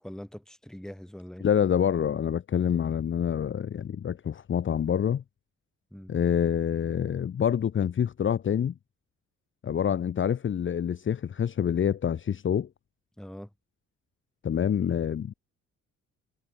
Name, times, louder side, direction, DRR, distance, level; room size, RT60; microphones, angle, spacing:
voice 1, 0.0-1.5 5.9-6.1 13.2-13.5, equal, ahead, 1.8 m, -42 dB
voice 2, 1.4-5.2 6.1-8.7 9.6-12.7 14.4-15.3, left 8 dB, 40° left, 0.9 m, -26 dB
cardioid pair, 90°, 30 cm